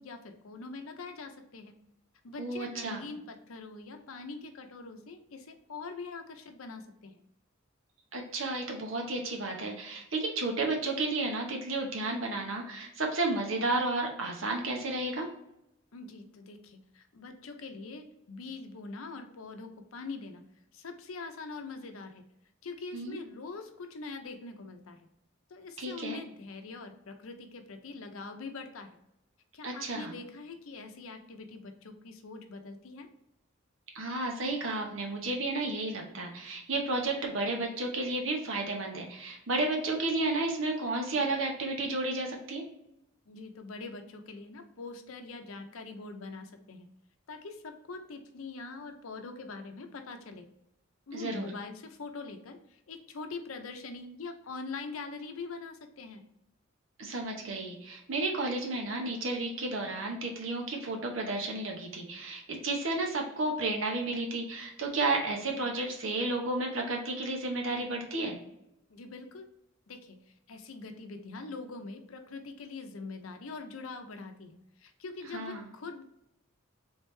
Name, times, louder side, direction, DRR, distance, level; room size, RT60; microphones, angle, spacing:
voice 1, 0.0-1.7 2.2-7.2 15.9-20.4 20.7-22.2 22.6-25.1 25.5-29.0 29.5-33.1 43.3-46.9 47.3-50.4 51.1-56.2 68.9-69.5 69.9-70.2 70.5-76.0, left 3 dB, 85° left, 6 dB, 0.6 m, -43 dB
voice 2, 2.4-3.0 8.1-15.3 22.9-23.2 25.8-26.2 29.6-30.1 33.9-42.6 51.1-51.5 57.0-68.4 75.3-75.7, right 2 dB, 70° right, 1 dB, 1.0 m, -32 dB
3.5 x 3.3 x 3.1 m, 0.82 s
head